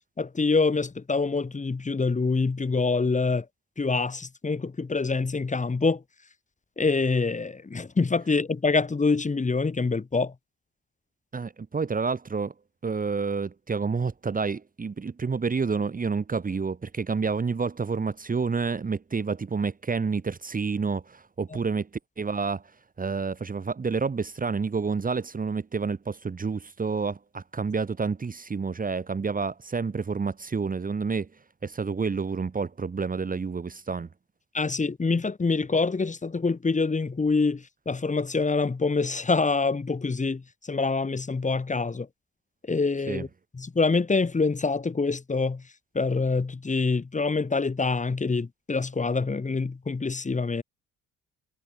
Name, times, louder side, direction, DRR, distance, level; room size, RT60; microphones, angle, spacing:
voice 1, 0.2-3.4 3.8-6.0 6.8-10.3 34.5-40.4 40.7-42.1 42.7-43.3 43.6-45.6 45.9-50.6, left 4 dB, 25° left, 2.3 m, -25 dB
voice 2, 11.3-12.5 12.8-21.9 22.2-22.6 23.0-31.3 31.6-34.1 43.1-43.2, right 5 dB, 30° right, 1.5 m, -29 dB
cardioid pair, 90°, 30 cm